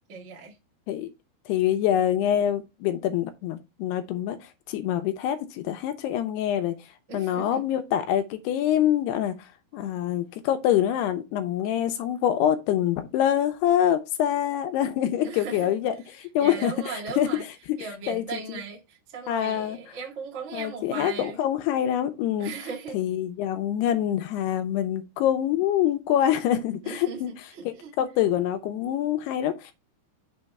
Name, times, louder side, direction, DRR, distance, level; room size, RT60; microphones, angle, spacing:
voice 1, 0.1-0.5 7.1-7.6 15.2-15.7 16.4-17.4 17.8-21.4 22.4-23.0 26.8-27.9, right 5 dB, 60° right, 0.7 m, -38 dB
voice 2, 1.5-4.4 4.7-6.7 7.1-9.3 9.7-16.7 17.2-17.3 18.1-18.6 19.3-19.8 20.5-22.5 22.9-27.3 28.0-29.7, left 11 dB, 80° left, 2.9 m, -25 dB
6.7 x 3.5 x 5.3 m
omnidirectional pair, 4.7 m